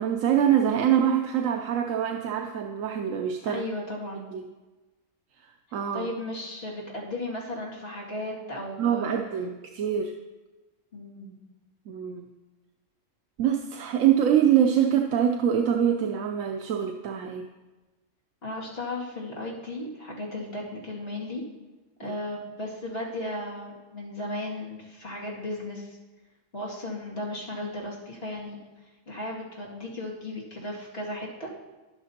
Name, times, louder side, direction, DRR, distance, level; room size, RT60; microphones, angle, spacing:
voice 1, 0.0-3.6 4.3-4.4 5.4-6.1 8.8-10.1 11.9-12.3 13.4-17.4 22.0-22.1, right 9 dB, 85° right, 4 dB, 1.1 m, -24 dB
voice 2, 3.5-4.3 5.9-9.2 10.9-11.3 18.4-21.4 22.0-26.0 26.5-28.6 29.1-31.5, left 1 dB, 50° left, -4 dB, 2.5 m, -35 dB
11.5 x 11.0 x 2.9 m, 1.2 s
omnidirectional pair, 1.3 m